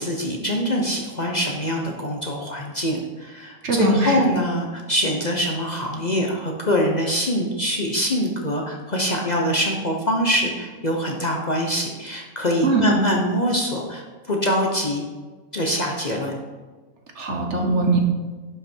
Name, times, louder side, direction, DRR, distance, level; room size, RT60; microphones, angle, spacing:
voice 1, 0.0-15.0 15.5-16.3, equal, 35° left, 0 dB, 0.9 m, -24 dB
voice 2, 3.6-4.2 12.6-12.9 17.1-18.0, right 3 dB, 55° right, 2 dB, 1.4 m, -21 dB
11.0 x 5.7 x 4.5 m, 1.3 s
omnidirectional pair, 1.5 m